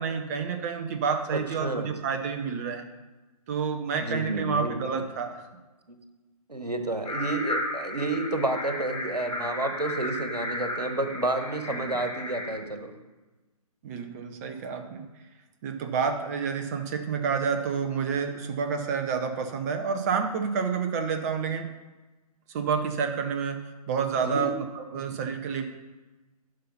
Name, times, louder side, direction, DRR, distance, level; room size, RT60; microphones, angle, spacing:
voice 1, 0.0-2.8 3.5-5.5 11.7-12.0 13.8-15.1 15.6-21.7 22.5-23.6 23.9-25.7, right 6 dB, 25° right, 6 dB, 0.7 m, -29 dB
voice 2, 1.3-1.9 4.0-4.8 5.9-6.0 6.5-13.0 24.1-24.5 24.9-25.0, right 2 dB, 90° right, 6 dB, 1.4 m, -30 dB
sound 1, 7.0-12.5, left 1 dB, 70° left, 3.0 m, -34 dB
11.5 x 5.5 x 5.6 m, 1.2 s
figure-of-eight pair, 135°, 20 cm